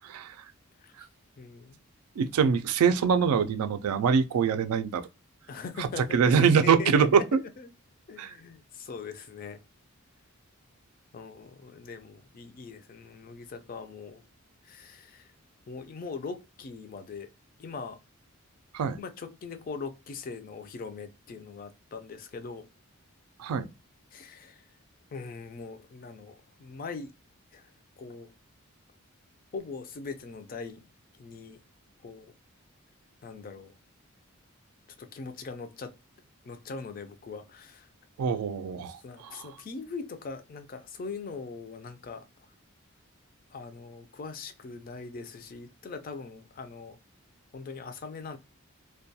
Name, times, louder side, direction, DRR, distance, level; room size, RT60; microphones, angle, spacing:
voice 1, 0.0-0.4 1.0-1.1 2.2-5.1 5.8-7.2 8.2-8.3 18.7-19.0 23.4-23.7 38.2-39.5, right 6 dB, 85° right, 0.3 m, -24 dB
voice 2, 1.4-1.8 5.5-7.2 7.6-7.7 8.1-9.6 11.1-14.2 14.6-15.3 15.7-17.3 17.6-18.0 19.0-22.7 24.1-24.7 25.1-26.3 26.6-27.1 27.5-27.7 28.0-28.3 29.5-30.9 31.2-31.6 32.0-32.3 33.2-33.7 35.0-35.9 36.4-37.9 39.0-42.2 43.5-47.0 47.5-48.4, left 4 dB, 40° left, 0.3 m, -41 dB
2.2 x 2.2 x 2.6 m
head